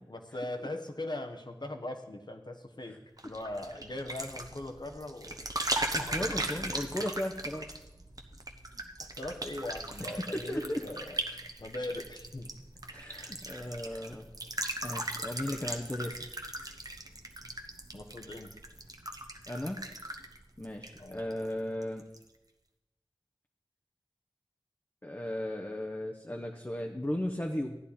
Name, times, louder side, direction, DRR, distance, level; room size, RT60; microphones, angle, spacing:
voice 1, 0.1-3.0 3.2-5.4 6.0-6.7 9.0-12.5 17.9-18.5 21.0-21.2, left 1 dB, 55° left, 5 dB, 1.2 m, -40 dB
sound 1, 3.2-21.5 21.8-22.2, right 1 dB, 45° right, 1.0 m, -39 dB
voice 2, 5.9-7.7 10.0-10.8 12.9-14.3 14.8-16.2 19.5-19.8 20.6-22.0 25.0-27.8, left 1 dB, 25° left, 2 dB, 0.9 m, -36 dB
14.0 x 9.9 x 4.2 m, 0.98 s
wide cardioid pair, 40°, 9 cm